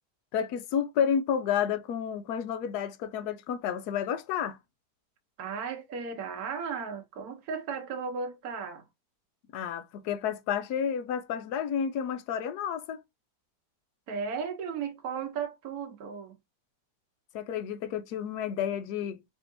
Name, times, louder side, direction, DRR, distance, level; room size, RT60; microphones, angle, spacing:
voice 1, 0.3-4.6 9.5-13.0 17.3-19.2, left 8 dB, 70° left, 1.2 m, -30 dB
voice 2, 5.4-8.8 14.1-16.4, right 6 dB, 65° right, 1.3 m, -35 dB
4.4 x 3.4 x 2.6 m
omnidirectional pair, 1.8 m